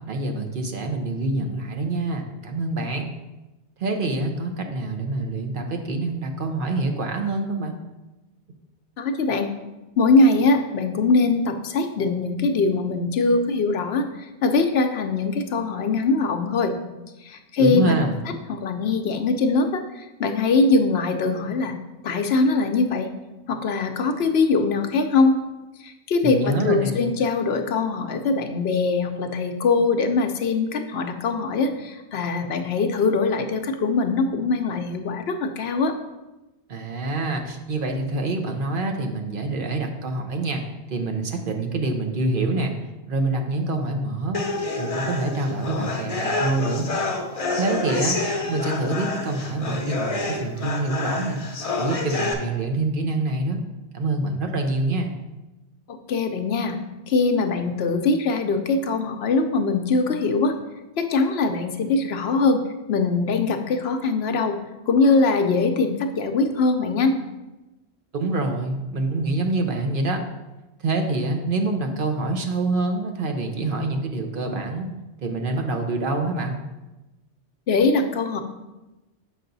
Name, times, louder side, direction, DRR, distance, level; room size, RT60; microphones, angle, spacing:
voice 1, 0.1-3.1 3.8-7.8 17.6-18.2 26.2-27.0 36.7-40.6 40.9-42.7 43.1-44.4 44.8-46.9 47.6-48.2 48.5-51.4 51.7-53.6 53.9-55.1 68.1-70.2 70.8-74.9 75.2-76.6, right 2 dB, 55° right, 4 dB, 0.9 m, -26 dB
voice 2, 9.0-9.5 10.0-16.8 17.2-18.1 18.5-21.7 22.0-23.1 23.5-25.3 25.8-36.0 55.9-56.8 57.1-60.6 61.0-62.6 62.9-64.6 64.9-67.1 77.7-78.4, left 3 dB, 70° left, 7 dB, 0.9 m, -22 dB
sound 1, 44.3-52.3, left 3 dB, 35° left, 0.8 m, -28 dB
6.5 x 5.6 x 3.9 m, 1.0 s
omnidirectional pair, 1.1 m